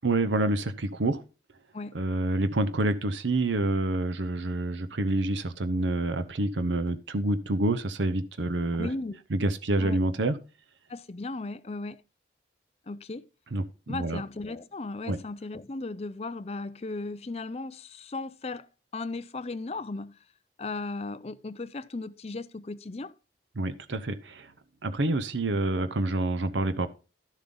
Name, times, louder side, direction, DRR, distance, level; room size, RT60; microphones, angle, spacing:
voice 1, 0.0-1.2 1.9-8.9 9.3-10.4 13.5-14.2 15.1-15.2 23.6-24.5 24.8-26.9, right 2 dB, 85° right, 0.8 m, -27 dB
voice 2, 8.7-9.2 9.8-10.0 10.9-12.0 12.9-13.3 13.9-18.7 18.9-20.2 20.6-23.1, left 3 dB, 35° left, 0.5 m, -36 dB
12.0 x 7.4 x 3.8 m
head